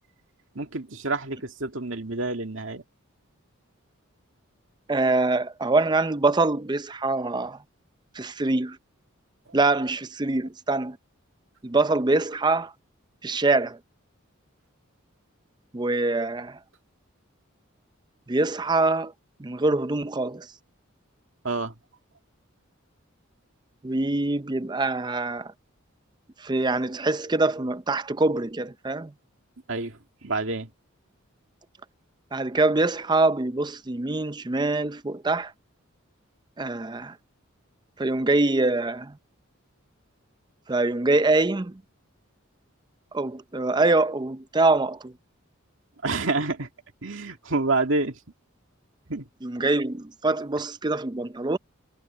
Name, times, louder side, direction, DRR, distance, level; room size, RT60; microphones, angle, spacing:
voice 1, 0.6-2.8 21.4-21.7 29.7-30.7 46.0-46.7 47.0-48.2 49.1-49.3, right 3 dB, 65° right, 2.3 m, -28 dB
voice 2, 4.9-7.6 8.1-8.8 9.5-11.0 11.6-12.7 13.2-13.8 15.7-16.6 18.3-19.1 19.4-20.5 23.8-25.5 26.4-29.1 32.3-35.5 36.6-37.2 38.0-39.2 40.7-41.8 43.1-45.1 49.4-51.6, right 2 dB, 20° right, 0.5 m, -24 dB
head